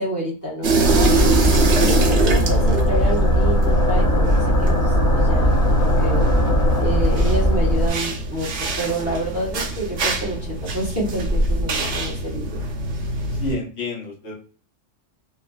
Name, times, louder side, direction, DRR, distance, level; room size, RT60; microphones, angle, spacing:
voice 1, 0.0-1.3 1.8-6.3 6.8-12.6, right 1 dB, 15° right, -7 dB, 0.9 m, -28 dB
sound 1, 0.6-13.6, right 2 dB, 70° right, 1.0 m, -23 dB
sound 2, 0.8-7.9, equal, 30° left, 0.3 m, -19 dB
voice 2, 13.3-14.3, left 2 dB, 60° left, -4 dB, 1.2 m, -30 dB
3.0 x 2.5 x 2.3 m, 0.42 s
omnidirectional pair, 1.3 m